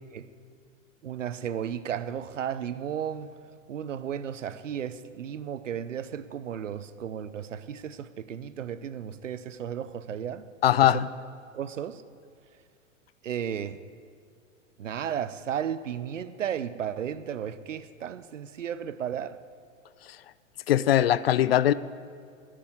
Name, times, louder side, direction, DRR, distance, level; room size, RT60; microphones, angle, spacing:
voice 1, 1.0-3.3 3.7-10.4 10.9-11.1 11.5-12.0 13.2-13.8 14.8-19.3, right 9 dB, 65° right, 14 dB, 0.8 m, -34 dB
voice 2, 10.6-11.1 20.7-21.7, left 12 dB, 50° left, 18 dB, 0.5 m, -21 dB
12.5 x 8.4 x 9.4 m, 2.3 s
figure-of-eight pair, 100°, 40 cm